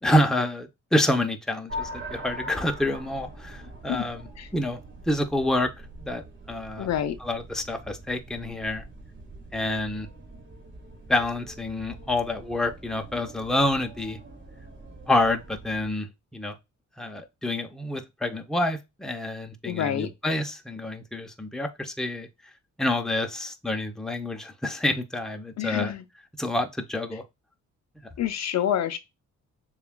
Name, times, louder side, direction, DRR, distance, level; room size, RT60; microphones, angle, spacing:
voice 1, 0.0-4.8 5.1-5.7 6.0-6.9 7.2-8.8 9.5-10.1 11.1-14.2 15.1-16.6 17.0-22.3 22.8-25.9 26.4-27.2 28.0-28.1, left 1 dB, ahead, 0.6 m, -28 dB
sound 1, 1.7-15.9, equal, 40° right, 1.8 m, -43 dB
voice 2, 6.8-7.2 19.6-20.1 25.6-26.0 28.2-29.0, left 10 dB, 60° left, 0.5 m, -27 dB
6.8 x 2.4 x 2.2 m
cardioid pair, 85°, 30 cm